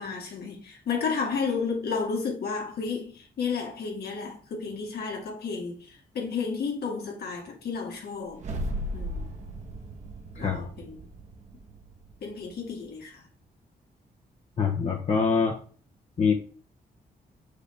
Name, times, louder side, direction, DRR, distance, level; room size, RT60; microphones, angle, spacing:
voice 1, 0.0-8.4 8.9-9.3 10.4-11.0 12.2-13.2, left 5 dB, 80° left, 1.9 m, -32 dB
sound 1, 8.3-12.7, equal, 45° right, 1.2 m, -36 dB
voice 2, 14.6-15.6 16.2-16.3, left 5 dB, 45° left, 0.9 m, -24 dB
6.9 x 4.9 x 3.4 m
wide cardioid pair, 130°, 16 cm